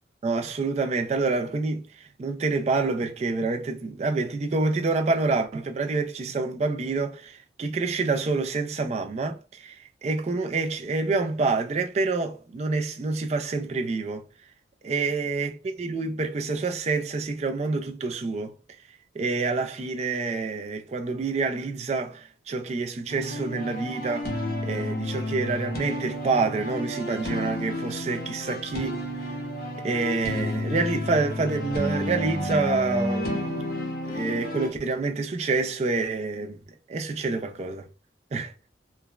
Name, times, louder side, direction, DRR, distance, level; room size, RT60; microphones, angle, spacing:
voice 1, 0.2-14.2 14.8-18.5 19.1-24.4 24.6-29.0 29.8-33.8 34.1-36.6 36.9-37.9 38.3-38.5, right 3 dB, 35° right, 0.3 m, -27 dB
sound 1, 23.1-34.7, left 1 dB, 50° left, 0.7 m, -31 dB
3.2 x 2.1 x 2.3 m
head